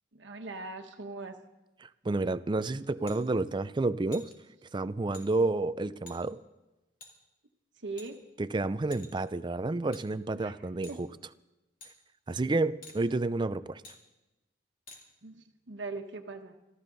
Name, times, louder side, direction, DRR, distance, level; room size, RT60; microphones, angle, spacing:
voice 1, 0.1-1.4 7.8-8.2 10.3-10.6 10.9-11.0 15.2-16.5, right 3 dB, 70° right, 4 dB, 1.3 m, -40 dB
voice 2, 1.8-4.3 4.7-6.4 8.4-11.1 12.3-13.8, right 2 dB, 25° right, 15 dB, 0.4 m, -30 dB
sound 1, 3.1-3.2 4.1-4.3 5.1-5.3 6.1-6.2 7.0-7.1 8.0-8.4 8.9-9.3 9.9-10.0 10.8-11.0 11.8-11.9 12.8-13.0 13.8-14.0 14.9-15.0, left 3 dB, 50° left, 3.0 m, -49 dB
25.5 x 14.0 x 4.0 m, 1.0 s
head